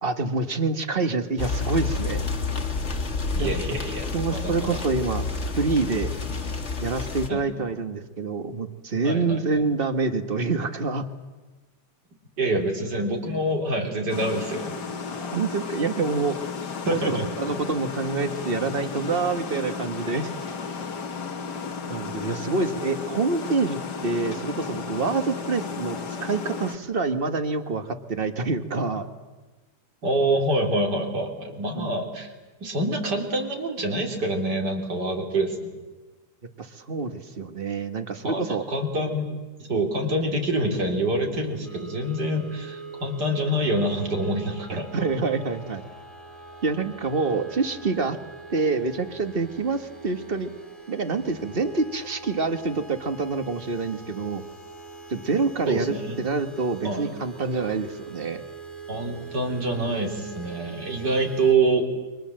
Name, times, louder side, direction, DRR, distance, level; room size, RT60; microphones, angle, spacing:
voice 1, 0.0-2.2 3.4-3.5 4.1-5.2 5.6-6.1 6.8-11.0 15.1-16.5 16.9-20.3 21.9-29.1 31.7-31.9 36.6-38.6 44.9-45.8 46.6-48.2 48.5-50.5 50.9-54.4 55.1-58.4, right 4 dB, 35° right, 9 dB, 1.6 m, -27 dB
sound 1, 1.4-7.3, left 4 dB, 40° left, 2.1 m, -29 dB
voice 2, 3.4-4.8 7.3-7.5 9.0-9.4 12.4-14.8 16.9-17.3 30.0-32.3 32.6-35.7 38.2-44.9 55.7-56.2 56.8-57.1 58.9-61.9, right 1 dB, 70° right, 2 dB, 4.1 m, -26 dB
sound 2, 14.1-26.8, left 5 dB, 75° left, 2.2 m, -34 dB
sound 3, 41.6-61.5, right 4 dB, ahead, 2.5 m, -43 dB
29.5 x 24.0 x 7.7 m, 1.2 s
omnidirectional pair, 1.8 m